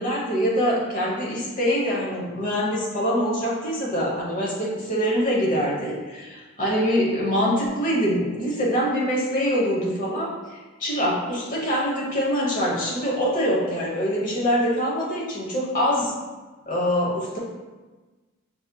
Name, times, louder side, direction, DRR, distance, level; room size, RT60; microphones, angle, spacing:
voice 1, 0.0-16.1 16.7-17.4, equal, 40° left, -5 dB, 0.9 m, -24 dB
5.9 x 2.7 x 2.2 m, 1.2 s
head